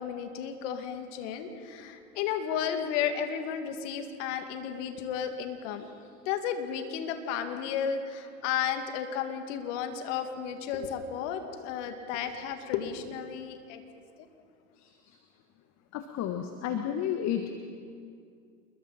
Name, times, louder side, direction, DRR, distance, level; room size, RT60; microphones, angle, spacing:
voice 1, 0.0-5.9 6.3-13.8, left 8 dB, 60° left, 6 dB, 2.5 m, -33 dB
voice 2, 14.8-15.2 15.9-17.5, left 9 dB, 40° left, 6 dB, 1.5 m, -32 dB
28.0 x 22.0 x 4.3 m, 2.3 s
hypercardioid pair, 105°, 41 cm